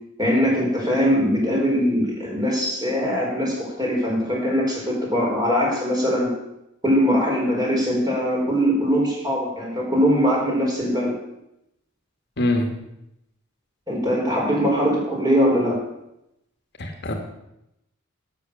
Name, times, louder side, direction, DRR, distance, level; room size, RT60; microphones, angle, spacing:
voice 1, 0.2-6.3 6.8-11.1 13.9-15.8, equal, 20° right, -2 dB, 4.1 m, -21 dB
voice 2, 12.4-12.7 16.8-17.1, left 1 dB, 55° left, 4 dB, 1.6 m, -23 dB
12.5 x 6.7 x 6.8 m, 0.84 s
head